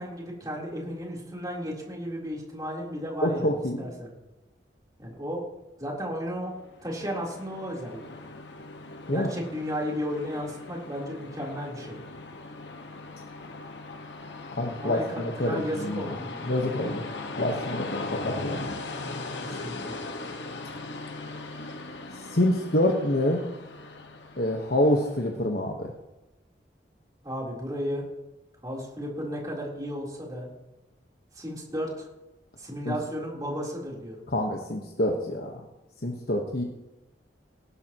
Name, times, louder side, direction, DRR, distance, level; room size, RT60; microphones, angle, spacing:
voice 1, 0.0-3.5 3.8-4.1 5.0-5.4 5.8-6.5 6.8-8.1 9.1-12.0 14.8-16.8 19.6-20.0 27.2-28.0 28.6-30.5 31.4-32.1 32.6-34.2, equal, 20° right, -3 dB, 3.7 m, -34 dB
voice 2, 3.2-3.8 9.1-9.3 14.6-16.1 16.4-17.0 17.4-18.7 22.3-23.4 24.4-25.9 32.8-33.0 34.3-35.5 36.0-36.6, left 1 dB, 60° left, 0 dB, 1.3 m, -26 dB
Train, 6.6-25.2, left 3 dB, 85° left, 1.5 m, -39 dB
19.0 x 11.5 x 3.0 m, 0.99 s
head